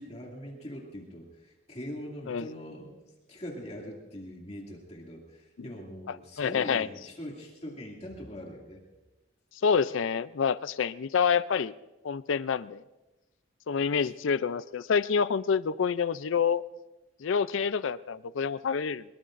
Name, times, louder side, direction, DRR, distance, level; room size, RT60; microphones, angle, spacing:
voice 1, 0.0-3.0 3.3-8.8, equal, 35° left, -1 dB, 2.4 m, -42 dB
voice 2, 6.4-6.9 9.6-11.7 12.0-12.8 13.7-16.6 17.2-19.0, left 6 dB, 80° left, 15 dB, 0.4 m, -27 dB
23.0 x 22.0 x 2.6 m, 1.1 s
head